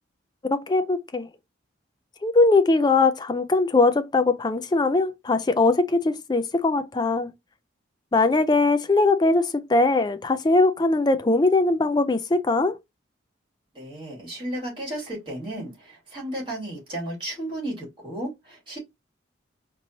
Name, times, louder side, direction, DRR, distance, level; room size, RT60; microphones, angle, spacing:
voice 1, 0.5-1.3 2.2-7.3 8.1-12.7, left 3 dB, 20° left, 0.4 m, -21 dB
voice 2, 13.7-18.8, right 1 dB, 25° right, 2.5 m, -34 dB
4.1 x 3.0 x 2.7 m
head